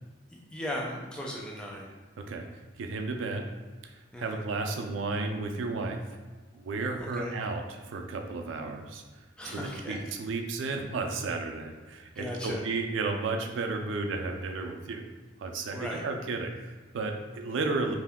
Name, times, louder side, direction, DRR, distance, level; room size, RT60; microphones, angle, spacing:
voice 1, 0.3-1.9 4.1-4.4 7.0-7.3 9.4-10.2 12.1-12.6 15.7-16.0, equal, 5° left, -3 dB, 0.3 m, -37 dB
voice 2, 2.8-3.4 3.8-6.0 6.5-9.3 9.5-15.0 15.4-17.9, right 3 dB, 75° right, 4 dB, 0.4 m, -33 dB
2.7 x 2.2 x 3.4 m, 1.3 s
head